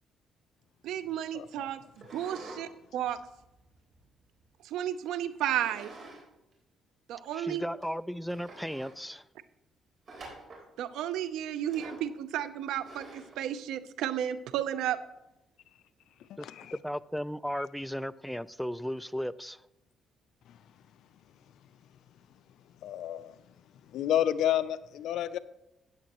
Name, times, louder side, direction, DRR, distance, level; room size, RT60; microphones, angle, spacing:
voice 1, 0.8-1.8 2.1-3.2 4.6-5.9 7.1-7.6 10.8-15.0, right 11 dB, 90° right, 0.6 m, -33 dB
voice 2, 1.3-1.7 16.3-16.7 22.8-23.3 23.9-25.4, left 11 dB, 80° left, 0.4 m, -30 dB
sound 1, 2.0-2.6 3.0-4.4 5.4-6.2 6.5-6.6 7.3-7.4 7.8-7.9 8.3-9.0 10.1-10.7 11.7-12.1 12.8-13.4, right 2 dB, 50° right, 3.8 m, -48 dB
voice 3, 7.3-9.2 16.4-19.6, equal, ahead, 0.3 m, -35 dB
14.0 x 9.2 x 3.0 m
cardioid pair, 90°, 0 cm